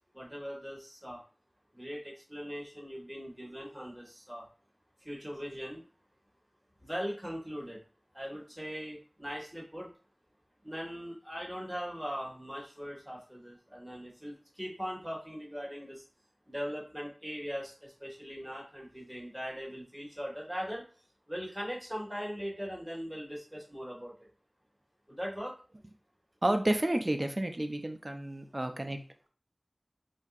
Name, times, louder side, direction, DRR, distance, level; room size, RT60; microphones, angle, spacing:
voice 1, 0.1-1.2 1.7-4.5 5.0-5.8 6.8-7.8 8.1-9.9 10.6-16.0 16.5-20.8 21.3-24.3 25.1-25.6, equal, 5° right, -3 dB, 1.8 m, -40 dB
voice 2, 26.4-29.0, right 1 dB, 40° right, 6 dB, 0.6 m, -30 dB
4.2 x 2.8 x 2.5 m, 0.37 s
wide cardioid pair, 45°, 0 cm